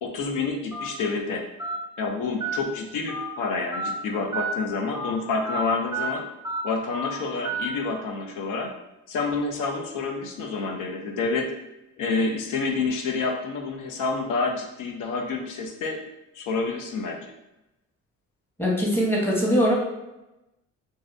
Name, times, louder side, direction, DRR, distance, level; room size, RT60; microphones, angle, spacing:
voice 1, 0.0-1.5 2.0-6.3 6.6-8.7 9.1-11.5 12.0-16.0 16.3-17.3, left 4 dB, 85° left, 3 dB, 0.5 m, -28 dB
Telephone, 0.7-0.9 1.6-1.8 2.4-2.6 3.1-3.3 3.7-3.9 4.3-4.5 4.9-5.1 5.5-5.6 5.9-6.1 6.4-6.6 6.9-7.1 7.4-7.7, right 3 dB, 10° right, 0.4 m, -30 dB
voice 2, 18.6-19.7, equal, 10° left, -3 dB, 0.9 m, -21 dB
3.0 x 2.6 x 2.5 m, 0.96 s
cardioid pair, 90°, 30 cm